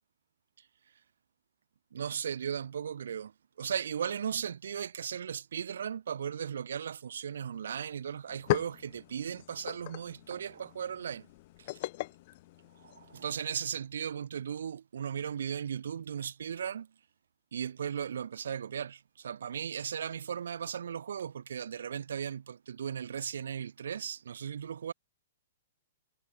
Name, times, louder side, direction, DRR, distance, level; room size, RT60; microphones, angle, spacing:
voice 1, 1.9-3.3 3.6-11.3 11.6-11.7 13.0-16.9 17.5-24.9, right 8 dB, 85° right, 2.7 m, -36 dB
sound 1, 7.8-7.9 8.2-13.3, left 19 dB, 45° left, 0.4 m, -38 dB
hypercardioid pair, 160°, 0 cm